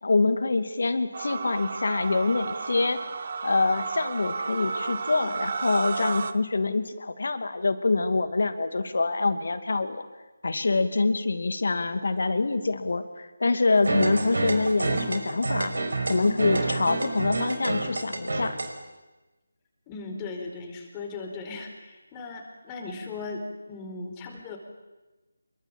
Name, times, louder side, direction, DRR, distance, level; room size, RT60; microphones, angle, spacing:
voice 1, 0.0-3.0 3.4-10.0 10.4-15.7 16.1-18.6, left 3 dB, 60° left, 10 dB, 2.6 m, -25 dB
sound 1, 1.1-6.3, right 5 dB, 45° right, 1.3 m, -32 dB
sound 2, 13.8-18.7, right 2 dB, 70° right, 5.3 m, -28 dB
voice 2, 19.9-24.6, left 3 dB, 15° left, 3 dB, 4.5 m, -37 dB
27.0 x 23.0 x 9.0 m, 1.1 s
figure-of-eight pair, 160°, 0 cm